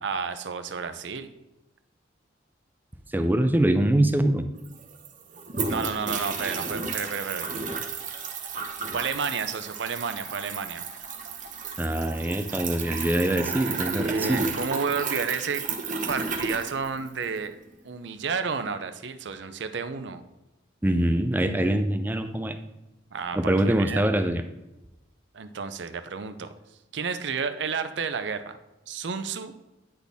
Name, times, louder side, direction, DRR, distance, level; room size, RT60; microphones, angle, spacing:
voice 1, 0.0-1.3 5.6-7.5 8.9-10.9 13.9-15.7 16.1-17.6 17.8-20.2 23.1-24.0 25.3-26.5 26.9-28.6 28.9-29.5, right 5 dB, 70° right, 10 dB, 0.6 m, -31 dB
voice 2, 3.1-4.5 11.8-14.5 20.8-22.6 23.3-24.4, right 1 dB, 10° right, 8 dB, 0.4 m, -24 dB
sound 1, 4.3-4.4 4.6-17.4, right 4 dB, 40° right, 0.9 m, -33 dB
9.8 x 4.1 x 3.5 m, 0.96 s
head